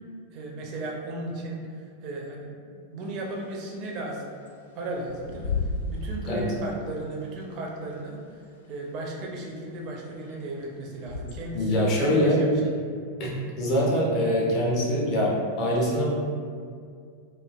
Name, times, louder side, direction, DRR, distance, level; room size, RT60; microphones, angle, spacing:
voice 1, 0.3-1.6 2.0-2.5 2.9-4.2 4.8-5.5 5.9-8.2 8.7-12.6, right 2 dB, 40° right, 0 dB, 0.5 m, -35 dB
Bird / Wind, 3.0-11.7, left 3 dB, 65° left, 0.3 m, -36 dB
voice 2, 11.5-12.4 13.2-16.0, equal, 40° left, -4 dB, 0.7 m, -24 dB
3.1 x 2.3 x 2.3 m, 2.2 s
figure-of-eight pair, 90°, 0 cm